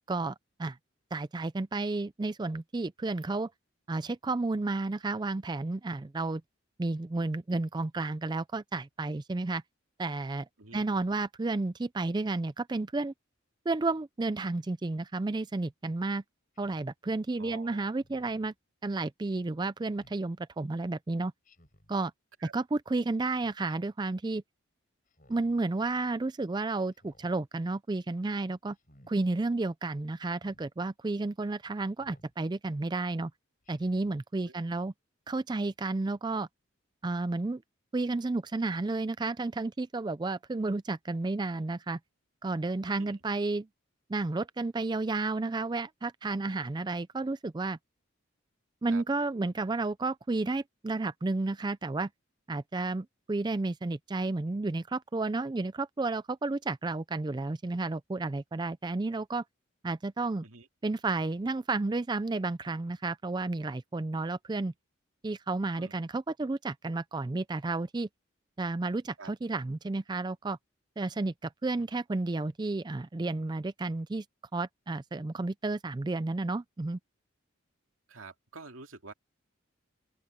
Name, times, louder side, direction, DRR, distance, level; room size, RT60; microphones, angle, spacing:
voice 1, 0.1-0.8 1.1-3.5 3.9-6.4 6.8-9.6 10.0-10.5 10.7-13.1 13.7-16.2 16.6-18.5 18.8-21.3 21.9-22.1 22.5-24.4 25.3-28.8 29.1-33.3 33.7-34.9 35.3-36.5 37.0-37.6 37.9-42.0 42.4-43.7 44.1-47.8 48.8-52.1 52.5-59.4 59.8-60.4 60.8-64.7 65.2-68.1 68.6-70.6 71.0-74.2 74.5-77.0, right 3 dB, 20° right, 0.4 m, -32 dB
voice 2, 10.6-10.9 17.4-17.9 22.4-22.5 34.4-34.5 43.0-43.2 48.9-49.0 60.4-60.7 65.8-65.9 69.2-69.3 71.8-71.9 78.1-79.1, right 4 dB, 85° right, 2.5 m, -48 dB
Speech synthesizer, 16.5-16.9 18.0-18.5 19.9-20.2 21.4-21.9 23.3-23.8 25.1-25.6 26.9-27.4 28.7-29.1 30.3-30.6 32.0-32.3 33.6-34.1, left 1 dB, 40° left, 7.6 m, -61 dB
open air
head